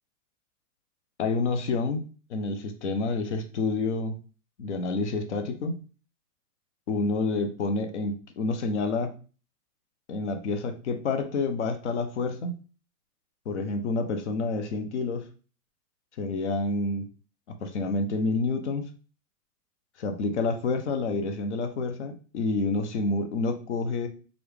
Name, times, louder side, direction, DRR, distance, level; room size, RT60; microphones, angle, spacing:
voice 1, 1.2-4.2 4.6-5.8 6.9-9.1 10.1-12.6 13.5-15.3 16.2-17.1 17.5-18.9 20.0-24.1, left 3 dB, 45° left, 8 dB, 0.8 m, -28 dB
4.2 x 3.5 x 3.3 m, 0.37 s
hypercardioid pair, 170°, 48 cm